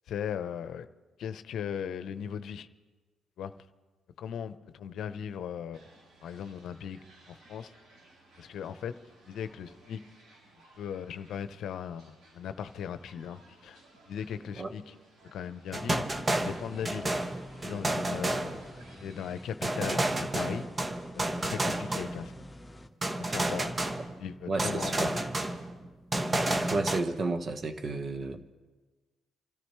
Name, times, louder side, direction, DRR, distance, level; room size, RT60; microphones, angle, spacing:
voice 1, 0.1-0.9 1.2-2.7 3.4-3.5 4.2-5.8 6.2-7.7 8.4-8.9 9.3-10.0 10.8-13.8 14.1-14.9 15.2-16.1 16.4-17.1 17.6-18.6 19.0-20.7 21.1-22.3 23.2-23.8 24.2-25.2, left 8 dB, 70° left, 11 dB, 0.7 m, -38 dB
sound 1, 5.7-19.5, right 2 dB, 80° right, 5.5 m, -58 dB
sound 2, 15.7-19.0 19.6-22.5 23.0-24.3 24.6-27.0, right 1 dB, 30° right, 1.2 m, -31 dB
sound 3, 16.1-22.9, left 1 dB, 10° left, 1.5 m, -49 dB
voice 2, 24.5-25.1 26.7-28.4, right 3 dB, 50° right, 7 dB, 1.3 m, -32 dB
28.0 x 13.5 x 3.2 m, 1.3 s
supercardioid pair, 60°, 0 cm